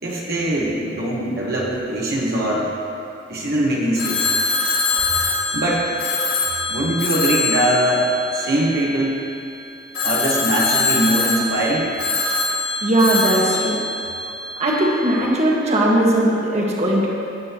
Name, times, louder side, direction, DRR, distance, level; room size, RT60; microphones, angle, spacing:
voice 1, 0.0-2.7 3.3-4.3 5.5-5.9 6.7-9.2 10.0-11.9, right 1 dB, 55° right, -5 dB, 1.4 m, -21 dB
Telephone, 3.9-9.2 9.9-14.8, left 3 dB, 55° left, 2.2 m, -23 dB
voice 2, 12.8-13.8 14.6-17.1, right 1 dB, 35° right, -4 dB, 1.6 m, -18 dB
17.5 x 8.8 x 3.1 m, 2.6 s
head